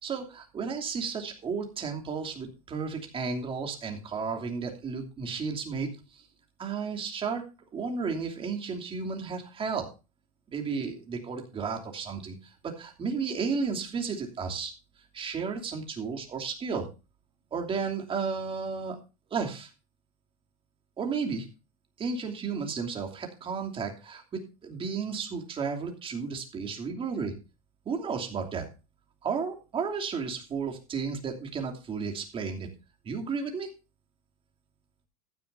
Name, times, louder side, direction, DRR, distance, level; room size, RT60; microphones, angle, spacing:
voice 1, 0.0-6.2 6.6-7.4 7.7-9.9 10.5-14.7 15.1-16.9 17.5-19.0 19.3-19.7 21.0-21.5 22.0-27.3 27.8-28.6 29.2-32.7 33.0-33.7, right 5 dB, 30° right, 2 dB, 2.9 m, -33 dB
14.5 x 10.0 x 2.7 m, 0.30 s
hypercardioid pair, 100°, 19 cm